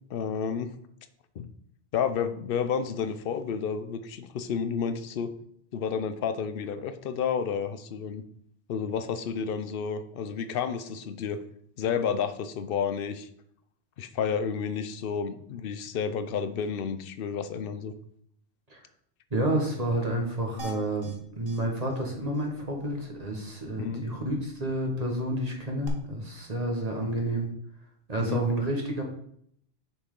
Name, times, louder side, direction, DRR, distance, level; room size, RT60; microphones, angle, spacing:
voice 1, 0.1-0.7 1.4-1.5 1.9-5.3 5.7-8.2 8.7-11.4 11.8-13.3 14.0-17.9 23.8-24.1 28.2-28.4, left 6 dB, 60° left, 10 dB, 0.7 m, -31 dB
voice 2, 19.3-27.5 28.1-29.0, right 1 dB, 35° right, 1 dB, 1.5 m, -30 dB
sound 1, 20.6-21.1 21.5-21.6 21.9-22.0 22.3-22.5 25.8-25.9, equal, 55° right, 1.3 m, -40 dB
6.3 x 6.0 x 3.8 m, 0.68 s
omnidirectional pair, 1.2 m